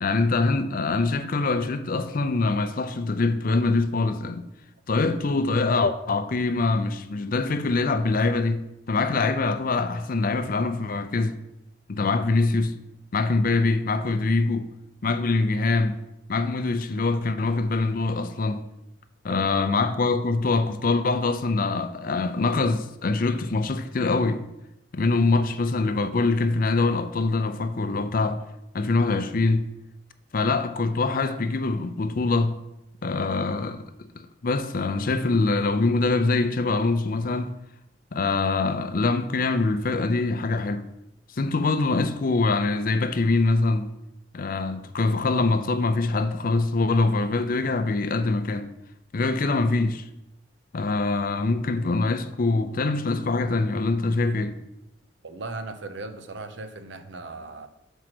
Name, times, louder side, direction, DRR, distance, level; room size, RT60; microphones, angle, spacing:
voice 1, 0.0-4.5 4.9-11.4 11.9-12.8 13.1-14.7 15.0-16.0 16.3-18.7 19.2-24.4 24.9-28.4 28.7-29.7 30.3-32.6 33.0-37.5 38.1-40.9 41.3-43.9 44.3-48.7 49.1-50.0 50.7-54.6, left 3 dB, 50° left, 0.5 m, -24 dB
voice 2, 19.3-19.7 25.4-25.5 55.2-57.7, right 3 dB, 75° right, 0.6 m, -38 dB
6.3 x 4.6 x 5.9 m
head